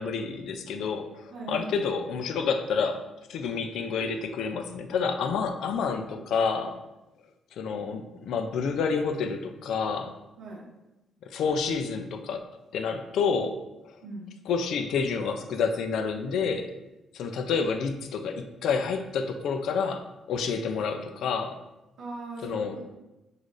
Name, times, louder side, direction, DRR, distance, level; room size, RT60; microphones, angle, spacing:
voice 1, 0.0-3.0 3.3-6.8 7.6-10.1 11.2-12.4 12.7-13.6 14.5-16.7 17.1-20.0 20.3-21.6 22.4-22.8, left 5 dB, 75° left, 7 dB, 0.4 m, -29 dB
voice 2, 1.3-1.8 7.7-7.8 10.4-10.7 14.0-14.3 22.0-22.8, right 3 dB, 80° right, -4 dB, 0.9 m, -39 dB
6.3 x 2.5 x 2.5 m, 0.99 s
cardioid pair, 90°, 0 cm